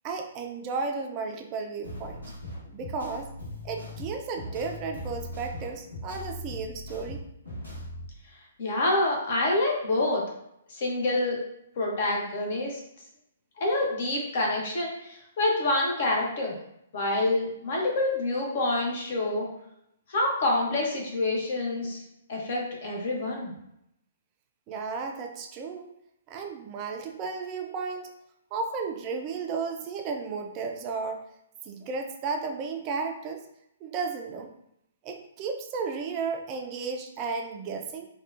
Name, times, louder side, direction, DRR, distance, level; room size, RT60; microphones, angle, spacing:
voice 1, 0.0-2.2 2.7-3.3 3.6-7.2 24.7-25.9 26.3-28.1 28.5-31.2 31.6-33.5 33.8-34.5 35.0-38.1, right 4 dB, 30° right, 4 dB, 0.4 m, -33 dB
sound 1, 1.8-8.1, left 1 dB, 80° left, 1.2 m, -39 dB
voice 2, 8.6-10.2 10.7-11.4 11.8-12.8 13.6-16.5 16.9-19.5 20.1-22.0 22.3-23.5, left 2 dB, 50° left, -1 dB, 0.9 m, -27 dB
3.5 x 2.3 x 2.5 m, 0.78 s
figure-of-eight pair, 120°, 0 cm